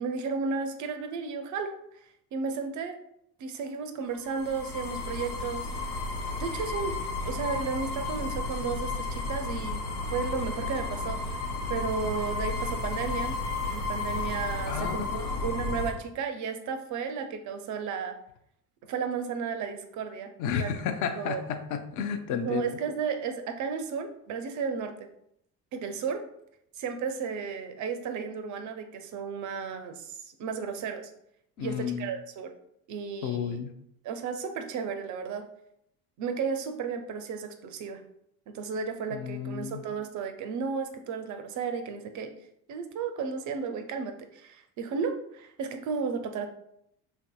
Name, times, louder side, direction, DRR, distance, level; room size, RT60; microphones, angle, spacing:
voice 1, 0.0-1.8 2.3-3.0 3.4-5.7 6.4-7.0 7.2-9.8 10.1-11.4 11.7-13.3 13.7-18.1 18.9-20.7 21.2-21.4 22.4-25.1 25.7-26.3 26.8-31.1 31.6-32.5 32.9-33.6 34.0-35.5 36.2-38.0 38.5-42.3 42.7-46.5, right 5 dB, 40° right, 7 dB, 0.5 m, -33 dB
sound 1, 4.1-15.9, left 3 dB, 90° left, 0.6 m, -33 dB
voice 2, 14.7-15.4 20.4-22.6 31.6-32.1 33.2-33.7 39.1-39.8, left 7 dB, 45° left, 7 dB, 0.5 m, -32 dB
3.3 x 2.6 x 2.3 m, 0.75 s
hypercardioid pair, 65°, 46 cm